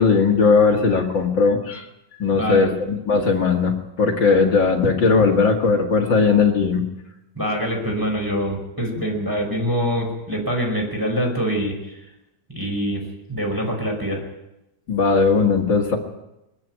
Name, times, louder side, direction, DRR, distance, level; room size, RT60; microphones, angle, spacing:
voice 1, 0.0-1.9 2.2-6.8 14.9-16.0, left 4 dB, 40° left, 1 dB, 2.0 m, -18 dB
voice 2, 2.3-2.7 4.3-4.4 7.3-12.0 12.5-13.0 13.3-14.2, equal, 5° right, -1 dB, 4.8 m, -24 dB
21.5 x 14.0 x 9.4 m, 0.92 s
omnidirectional pair, 4.4 m